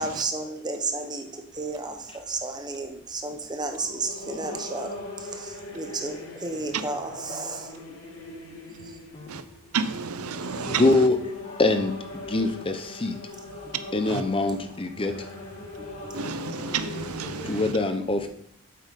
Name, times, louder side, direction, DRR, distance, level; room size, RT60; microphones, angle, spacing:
voice 1, 0.0-8.0 8.7-9.0 10.4-11.0 13.6-13.7 15.8-16.2 17.3-17.4, right 3 dB, 20° right, 1.0 m, -33 dB
sound 1, 1.5-17.6, left 2 dB, 85° left, 3.9 m, -41 dB
voice 2, 9.7-11.1 14.1-14.2 16.1-17.7, right 5 dB, 90° right, 0.7 m, -31 dB
voice 3, 10.7-11.2 11.4-12.0 12.2-13.2 13.9-15.2 17.4-18.3, left 2 dB, 25° left, 0.7 m, -24 dB
8.5 x 7.9 x 4.1 m
head